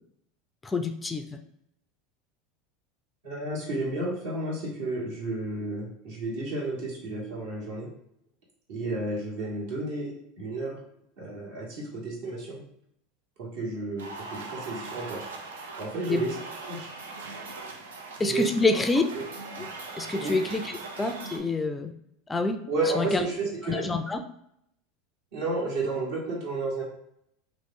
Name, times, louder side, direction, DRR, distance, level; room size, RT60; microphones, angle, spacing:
voice 1, 0.6-1.4 16.1-16.3 18.2-19.0 19.6-19.7 20.0-21.9 22.3-22.6 23.0-23.2 23.6-24.2, left 3 dB, 15° left, 7 dB, 0.3 m, -27 dB
voice 2, 3.2-7.9 8.7-10.8 11.2-12.6 13.4-15.3 15.8-16.3 16.6-16.9 18.2-18.8 19.1-19.2 20.1-20.4 22.7-23.9 25.3-26.8, right 2 dB, 70° right, -4 dB, 1.5 m, -32 dB
sound 1, 14.0-21.4, right 3 dB, 90° right, 0.5 m, -40 dB
3.0 x 2.4 x 3.7 m, 0.76 s
hypercardioid pair, 95°, 0 cm